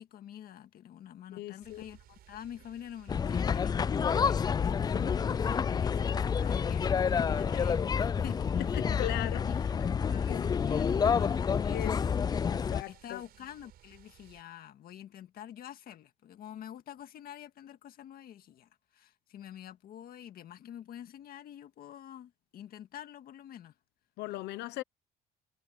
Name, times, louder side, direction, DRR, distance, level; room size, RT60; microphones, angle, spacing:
voice 1, 0.0-12.2 12.9-23.7, left 10 dB, 60° left, 1.8 m, -47 dB
voice 2, 1.3-1.8 8.6-9.7 10.1-10.5 11.7-12.1 12.5-13.2 24.2-24.8, left 17 dB, 85° left, 1.0 m, -39 dB
sound 1, 1.6-14.4, right 12 dB, 65° right, 5.0 m, -59 dB
sound 2, 3.1-12.8, left 6 dB, 25° left, 0.3 m, -29 dB
cardioid pair, 110°, 17 cm